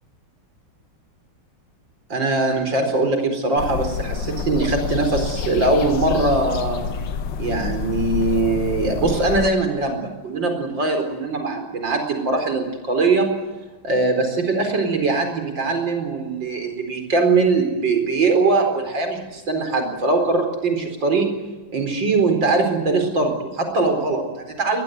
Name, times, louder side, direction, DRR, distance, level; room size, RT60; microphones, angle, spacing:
voice 1, 2.1-6.8 7.4-13.3 13.8-21.3 21.7-24.8, right 3 dB, 65° right, 5 dB, 5.1 m, -21 dB
sound 1, 3.6-9.5, left 6 dB, 65° left, 1.8 m, -28 dB
22.5 x 21.0 x 9.5 m, 1.2 s
omnidirectional pair, 2.2 m